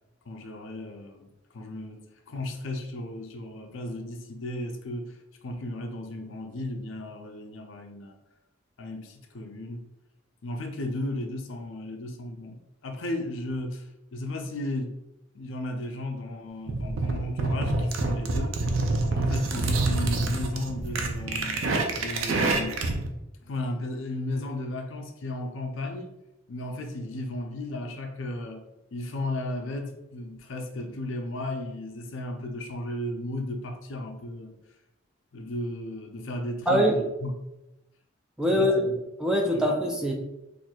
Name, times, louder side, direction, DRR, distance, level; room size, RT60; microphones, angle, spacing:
voice 1, 0.3-8.2 8.8-9.9 10.4-15.0 15.3-18.6 19.1-22.8 23.4-26.1 26.5-34.6 35.3-37.3 38.5-38.9 39.5-39.7, left 1 dB, 75° left, 4 dB, 0.5 m, -35 dB
sound 1, 16.7-23.1, right 2 dB, 80° right, 0.5 m, -27 dB
voice 2, 36.7-37.0 38.4-38.9 39.2-40.1, equal, 5° right, 0 dB, 0.3 m, -23 dB
4.3 x 2.5 x 2.3 m, 0.93 s
head